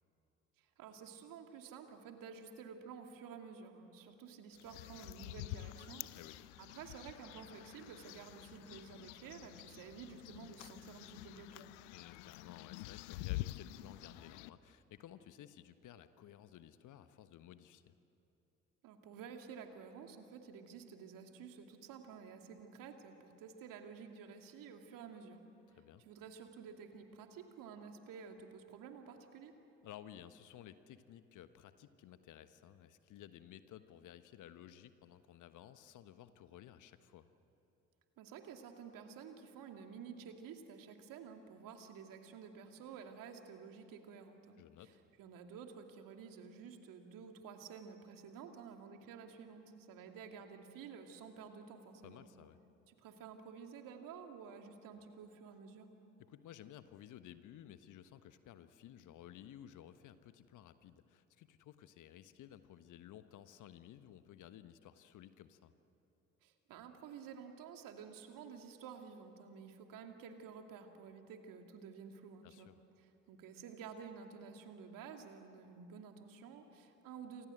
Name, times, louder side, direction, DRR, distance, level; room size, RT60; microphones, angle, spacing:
voice 1, 0.6-6.1 6.6-11.7 18.8-25.4 26.0-29.5 38.2-44.9 45.2-52.3 52.9-55.9 66.4-72.7 73.0-77.5, right 6 dB, 60° right, 4 dB, 2.7 m, -52 dB
sound 1, 4.5-14.5, left 18 dB, 70° left, 0.8 m, -47 dB
voice 2, 11.9-17.9 25.7-26.0 29.8-37.3 44.6-45.0 52.0-52.6 56.2-65.7 72.4-72.8, left 11 dB, 55° left, 11 dB, 1.3 m, -55 dB
28.0 x 25.5 x 7.9 m, 2.9 s
figure-of-eight pair, 55°, 37 cm